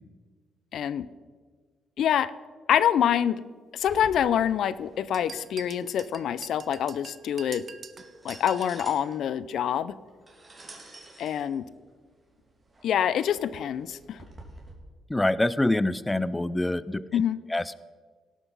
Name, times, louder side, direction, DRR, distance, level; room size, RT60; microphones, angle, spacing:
voice 1, 0.7-1.1 2.0-2.3 2.7-3.4 3.7-7.7 8.2-10.0 11.2-11.6 12.8-14.2 17.1-17.4, left 9 dB, 70° left, 16 dB, 0.4 m, -26 dB
sound 1, 3.8-14.7, right 2 dB, 25° right, 2.9 m, -50 dB
sound 2, 5.1-9.0, right 6 dB, 45° right, 0.7 m, -45 dB
voice 2, 15.1-17.2 17.5-17.7, left 1 dB, 10° left, 17 dB, 0.4 m, -26 dB
18.0 x 6.0 x 5.4 m, 1.5 s
cardioid pair, 90°, 0 cm